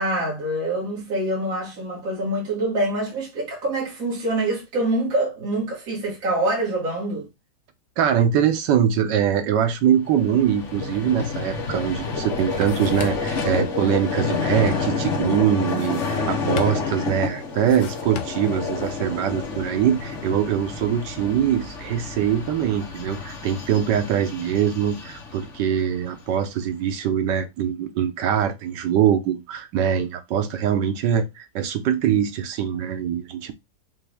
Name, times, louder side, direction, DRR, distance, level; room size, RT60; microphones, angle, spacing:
voice 1, 0.0-7.3, right 1 dB, 50° right, 2.2 m, -25 dB
voice 2, 8.0-33.5, right 9 dB, 85° right, 1.4 m, -23 dB
Vehicle, 10.0-26.3, left 4 dB, 50° left, 1.3 m, -29 dB
sound 1, 11.7-11.8 12.2-13.4 15.7-16.3 16.6-17.0 17.5-18.6, left 9 dB, 65° left, 0.7 m, -36 dB
5.8 x 2.6 x 3.4 m
omnidirectional pair, 1.9 m